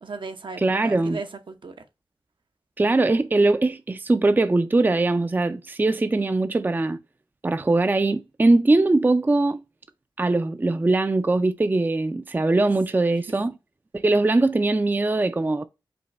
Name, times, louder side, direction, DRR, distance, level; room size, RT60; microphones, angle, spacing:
voice 1, 0.0-1.7 6.0-6.3 13.3-13.4, right 4 dB, 70° right, 0.9 m, -37 dB
voice 2, 0.6-1.2 2.8-7.0 7.4-9.6 10.2-13.6 13.9-15.6, right 2 dB, 20° right, 0.4 m, -21 dB
5.2 x 2.3 x 4.2 m
cardioid pair, 55°, 9 cm